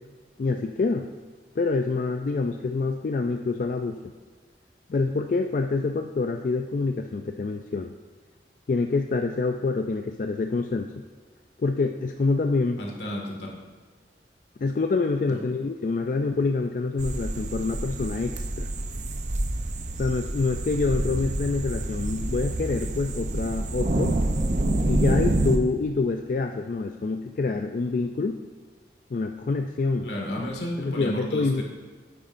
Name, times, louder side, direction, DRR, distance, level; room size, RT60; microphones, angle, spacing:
voice 1, 0.4-1.1 1.6-4.0 4.9-7.9 8.7-11.0 11.6-12.8 14.6-18.7 20.0-24.2 24.9-28.4 29.1-30.1 30.8-31.6, left 3 dB, 45° left, 5 dB, 0.3 m, -26 dB
voice 2, 12.8-13.4 15.3-15.4 21.0-21.2 30.0-31.6, equal, 75° left, -1 dB, 1.9 m, -32 dB
sound 1, 17.0-25.6, right 1 dB, 45° right, 0.6 m, -27 dB
9.7 x 8.8 x 2.6 m, 1.5 s
head